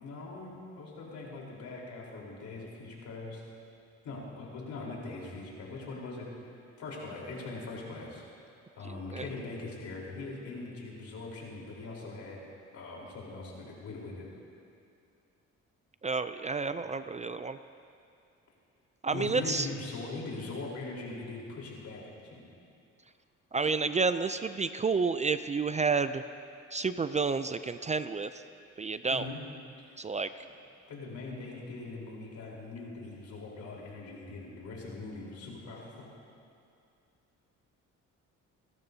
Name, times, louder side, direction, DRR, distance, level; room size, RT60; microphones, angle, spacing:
voice 1, 0.0-3.4 4.0-6.3 6.8-8.2 8.8-12.4 12.7-14.3 19.1-22.4 29.1-29.4 29.8-29.9 30.9-36.1, left 3 dB, 75° left, -3 dB, 4.0 m, -41 dB
voice 2, 8.8-9.3 16.0-17.6 19.0-19.7 23.5-26.2 26.7-28.4 28.8-29.3 30.0-30.3, right 4 dB, 25° right, 11 dB, 0.4 m, -30 dB
28.5 x 12.5 x 2.8 m, 2.5 s
cardioid pair, 90°, 30 cm